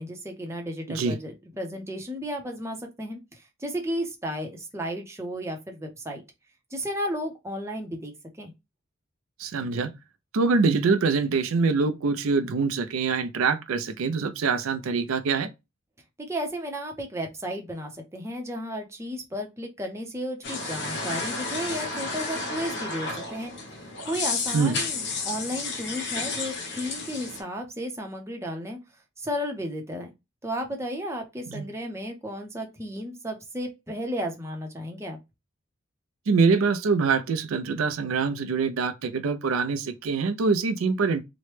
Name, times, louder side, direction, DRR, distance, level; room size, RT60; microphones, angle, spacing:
voice 1, 0.0-6.2 6.7-8.5 16.2-23.5 24.0-28.8 29.2-30.1 30.4-35.2, equal, 15° right, 0.6 m, -33 dB
voice 2, 9.4-9.9 10.3-15.5 24.5-24.8 31.5-31.7 36.3-41.2, right 4 dB, 80° right, 0.4 m, -24 dB
sound 1, 20.4-27.4, left 4 dB, 55° left, 0.8 m, -32 dB
3.0 x 2.1 x 3.1 m
head